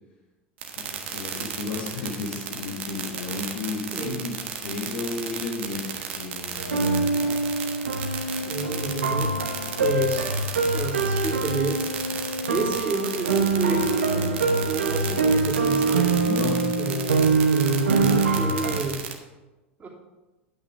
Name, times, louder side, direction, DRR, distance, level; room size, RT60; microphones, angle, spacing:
sound 1, 0.6-19.1, right 9 dB, 65° right, 1.4 m, -33 dB
voice 1, 0.8-7.4 16.2-16.8, left 4 dB, 65° left, -2 dB, 1.6 m, -33 dB
sound 2, 6.6-18.8, right 3 dB, 85° right, 1.1 m, -24 dB
voice 2, 8.4-9.3 9.8-10.2 10.7-11.8 12.5-16.2 16.8-19.0 19.8-19.9, right 3 dB, 25° right, -3 dB, 2.9 m, -29 dB
11.0 x 6.1 x 5.0 m, 1.1 s
hypercardioid pair, 85°, 7 cm